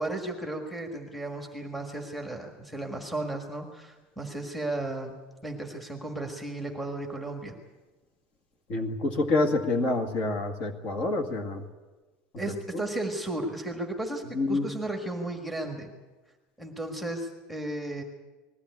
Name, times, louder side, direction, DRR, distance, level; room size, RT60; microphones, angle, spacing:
voice 1, 0.0-5.1 5.4-7.6 12.4-15.9 16.6-18.0, right 2 dB, ahead, 2 dB, 1.7 m, -34 dB
voice 2, 8.7-11.6 12.5-12.8 14.3-14.7, left 2 dB, 35° left, 5 dB, 2.1 m, -27 dB
20.5 x 15.5 x 9.6 m, 1.2 s
cardioid pair, 180°, 4 cm